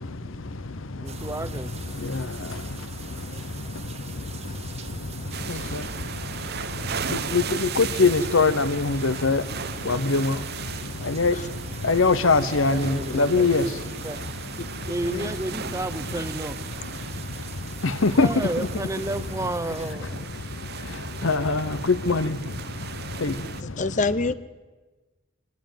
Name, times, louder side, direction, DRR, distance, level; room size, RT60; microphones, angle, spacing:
voice 1, 1.0-1.7 10.2-10.4 12.7-14.2 14.9-16.6 18.2-20.3 21.3-21.7, right 1 dB, 15° right, 13 dB, 0.8 m, -32 dB
sound 1, 1.1-20.0, right 4 dB, 30° right, 1.6 m, -43 dB
voice 2, 4.5-4.9 5.5-5.7 11.3-11.5 14.6-14.7 15.0-15.4 16.2-16.3 23.6-24.3, left 3 dB, 35° left, 15 dB, 0.8 m, -29 dB
sound 2, 5.3-23.6, right 7 dB, 50° right, 0.8 m, -37 dB
voice 3, 7.3-9.4 9.9-10.3 11.1-11.3 11.9-13.6 18.0-18.3 21.2-21.6 22.1-22.4 23.2-23.3, left 3 dB, 65° left, 15 dB, 0.9 m, -21 dB
25.5 x 18.5 x 9.2 m, 1.3 s
head